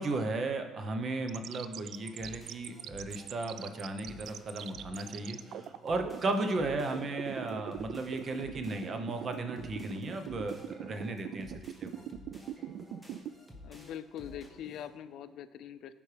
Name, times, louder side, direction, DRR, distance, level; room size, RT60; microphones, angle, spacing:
voice 1, 0.0-12.0, right 2 dB, 35° right, 7 dB, 0.8 m, -35 dB
sound 1, 1.3-13.3, right 10 dB, 65° right, 0.3 m, -41 dB
sound 2, 1.9-14.9, left 1 dB, 5° right, 1.3 m, -54 dB
voice 2, 13.6-15.9, left 10 dB, 65° left, 13 dB, 0.4 m, -43 dB
14.0 x 5.3 x 3.4 m, 1.5 s
cardioid pair, 120°, 0 cm